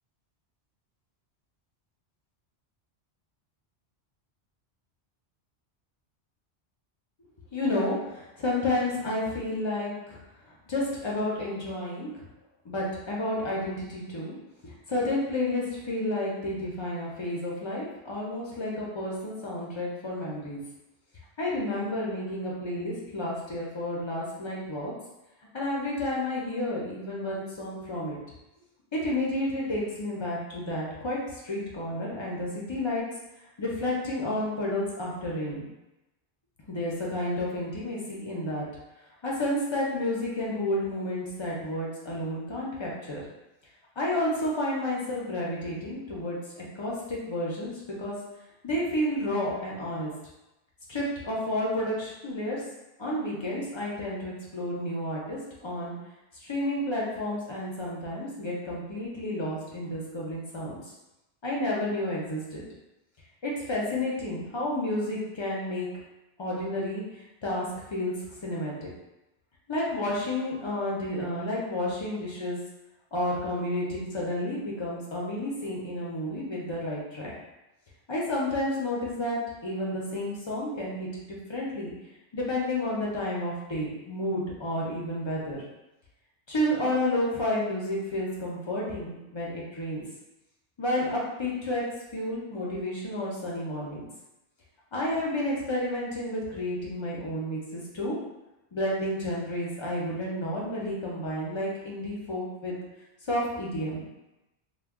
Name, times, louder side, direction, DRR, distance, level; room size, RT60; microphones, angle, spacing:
voice 1, 7.5-10.2 10.7-12.2 12.6-14.3 14.6-20.6 21.4-24.9 25.5-28.2 28.9-33.0 33.6-35.7 36.7-38.7 39.2-43.2 44.0-48.2 48.6-50.1 50.9-52.6 53.0-55.9 56.4-60.9 61.4-62.6 63.4-65.9 66.4-67.0 67.4-68.1 68.4-68.9 69.7-72.6 73.1-77.3 78.1-81.9 82.3-85.6 86.5-90.0 90.8-91.8 92.1-94.0 94.9-98.2 98.7-102.7 103.2-104.0, left 1 dB, 45° left, -4 dB, 0.3 m, -31 dB
2.2 x 2.1 x 3.4 m, 0.98 s
omnidirectional pair, 1.1 m